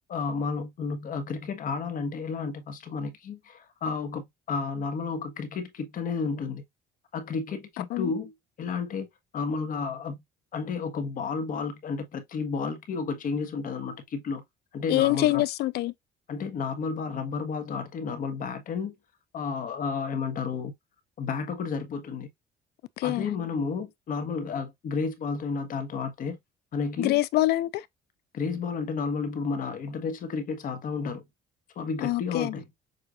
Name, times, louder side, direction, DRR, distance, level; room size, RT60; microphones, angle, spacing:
voice 1, 0.1-6.6 7.1-9.1 9.3-10.2 10.5-14.4 14.7-15.4 16.3-18.9 19.3-20.7 21.2-22.3 23.0-26.4 26.7-27.2 28.3-31.2 31.7-32.6, left 5 dB, 55° left, 1.4 m, -32 dB
voice 2, 14.9-15.9 23.0-23.3 27.0-27.9 32.0-32.5, left 16 dB, 75° left, 0.4 m, -25 dB
6.7 x 2.7 x 2.5 m
cardioid pair, 110°, 17 cm